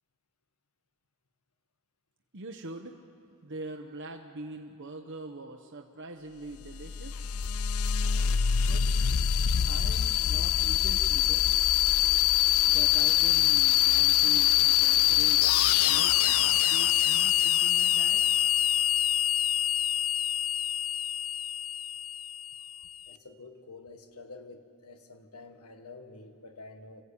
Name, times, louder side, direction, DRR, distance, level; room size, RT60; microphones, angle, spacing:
voice 1, 2.3-3.0 3.4-7.3 8.6-8.9 9.7-11.5 12.7-15.5 15.8-18.2, right 2 dB, 55° right, 4 dB, 1.0 m, -43 dB
sound 1, 6.6-23.0, left 11 dB, 70° left, 0.5 m, -25 dB
voice 2, 23.1-27.0, left 3 dB, 85° left, 7 dB, 1.6 m, -48 dB
26.5 x 16.0 x 8.5 m, 2.4 s
head